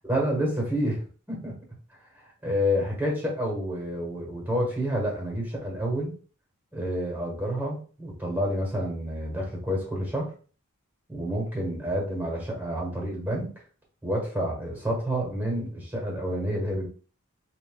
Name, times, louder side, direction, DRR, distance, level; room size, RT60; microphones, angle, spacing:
voice 1, 0.1-1.0 1.3-1.5 2.4-6.1 6.7-10.3 11.1-13.5 14.0-16.9, equal, 10° right, -1 dB, 1.4 m, -29 dB
5.6 x 2.6 x 2.2 m, 0.39 s
head